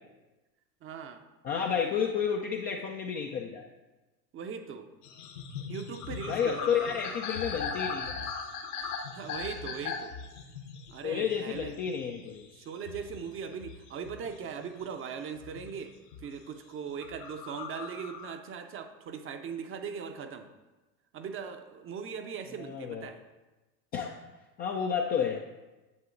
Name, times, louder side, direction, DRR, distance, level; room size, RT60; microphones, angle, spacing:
voice 1, 0.8-1.2 4.3-4.9 5.7-7.0 9.1-10.1 10.9-11.7 12.5-15.9 16.2-20.5 21.1-23.2, right 6 dB, 25° right, 7 dB, 0.6 m, -39 dB
voice 2, 1.4-3.6 6.3-8.2 11.0-12.5 22.6-23.1 23.9-24.2 24.6-25.4, left 7 dB, 20° left, 1 dB, 0.3 m, -31 dB
sound 1, 5.0-14.9 15.4-16.4 16.9-18.3, left 6 dB, 65° left, 1.2 m, -39 dB
9.6 x 7.4 x 2.6 m, 1.1 s
figure-of-eight pair, 80°, 49 cm